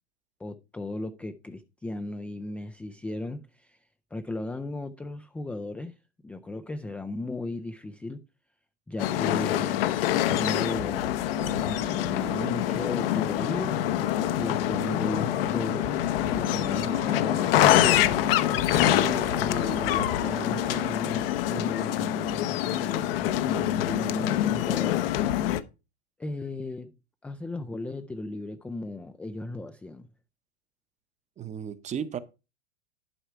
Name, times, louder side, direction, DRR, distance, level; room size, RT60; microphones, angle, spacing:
voice 1, 0.4-3.8 4.1-6.0 6.2-8.2 8.9-11.2 11.6-13.9 14.4-15.9 16.3-18.2 19.0-25.0 26.2-26.9 27.2-30.1, left 2 dB, 5° left, 0.4 m, -36 dB
sound 1, 9.0-25.6, left 13 dB, 60° left, 0.9 m, -25 dB
sound 2, 11.3-20.9, right 13 dB, 60° right, 0.9 m, -42 dB
voice 2, 31.4-32.2, right 8 dB, 20° right, 0.8 m, -35 dB
11.5 x 4.8 x 4.6 m
hypercardioid pair, 110°, 32 cm